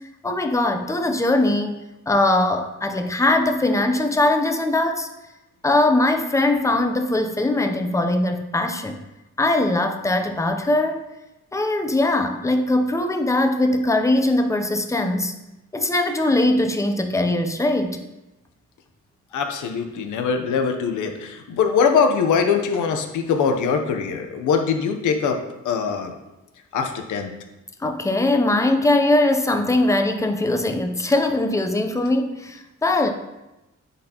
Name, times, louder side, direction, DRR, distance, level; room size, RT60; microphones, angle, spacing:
voice 1, 0.2-1.7 2.1-5.1 5.6-9.0 9.4-11.0 11.5-15.4 15.7-18.0 27.8-33.1, left 2 dB, 10° left, 5 dB, 0.6 m, -21 dB
voice 2, 19.3-26.1 26.7-27.3, left 6 dB, 90° left, 5 dB, 0.9 m, -22 dB
9.9 x 4.2 x 2.9 m, 0.98 s
cardioid pair, 105°, 29 cm